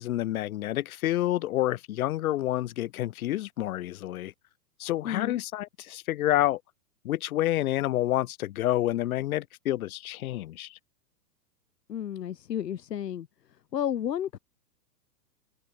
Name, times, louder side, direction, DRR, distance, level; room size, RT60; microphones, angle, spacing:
voice 1, 0.0-4.3 4.8-6.6 7.0-10.8, left 14 dB, 60° left, 2.7 m, -28 dB
voice 2, 5.0-5.4 11.9-13.3 13.7-14.4, left 10 dB, 75° left, 1.7 m, -31 dB
hypercardioid pair, 120°, 49 cm